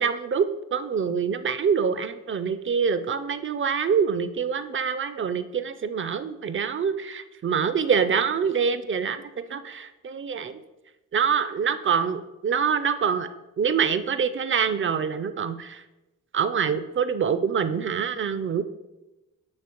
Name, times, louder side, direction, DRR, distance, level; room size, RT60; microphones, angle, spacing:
voice 1, 0.0-9.2 9.5-10.6 11.1-13.3 13.6-15.8 16.3-18.6, right 6 dB, 35° right, 11 dB, 0.4 m, -25 dB
9.6 x 3.4 x 2.9 m, 1.0 s
cardioid pair, 60°, 35 cm